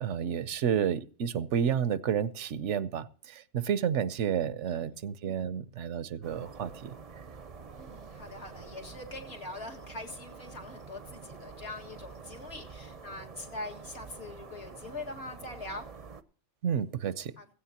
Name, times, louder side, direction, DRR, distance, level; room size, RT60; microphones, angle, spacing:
voice 1, 0.0-6.9 16.6-17.3, right 8 dB, 80° right, 1.0 m, -30 dB
sound 1, 6.2-16.2, right 5 dB, 40° right, 0.6 m, -47 dB
voice 2, 7.8-15.9 17.4-17.5, left 2 dB, 60° left, 2.1 m, -43 dB
15.5 x 15.5 x 2.8 m
omnidirectional pair, 1.2 m